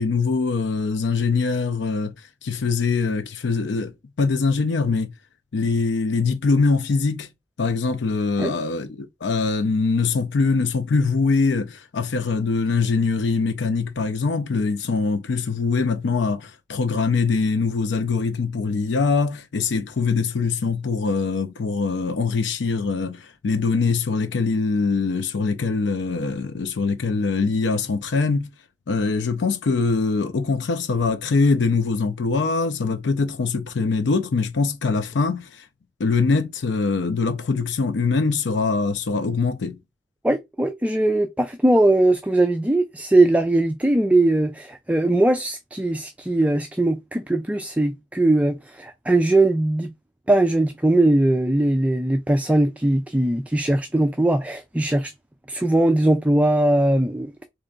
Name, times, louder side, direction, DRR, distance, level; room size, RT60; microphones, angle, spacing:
voice 1, 0.0-5.1 5.5-7.3 7.6-28.5 28.9-35.7 36.0-39.8, left 4 dB, 80° left, 0.5 m, -23 dB
voice 2, 40.2-49.9 50.3-55.1 55.5-57.3, right 1 dB, 10° right, 0.4 m, -20 dB
3.8 x 3.3 x 3.8 m
head